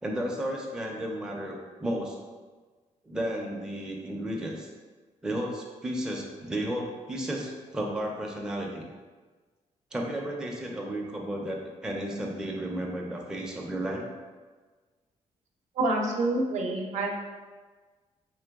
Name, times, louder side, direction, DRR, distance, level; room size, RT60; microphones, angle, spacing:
voice 1, 0.0-2.2 3.0-4.7 5.2-8.9 9.9-14.0, right 1 dB, 5° right, -1 dB, 0.4 m, -33 dB
voice 2, 15.8-17.1, right 2 dB, 65° right, 1 dB, 0.6 m, -27 dB
3.8 x 3.2 x 3.4 m, 1.4 s
wide cardioid pair, 175°, 13 cm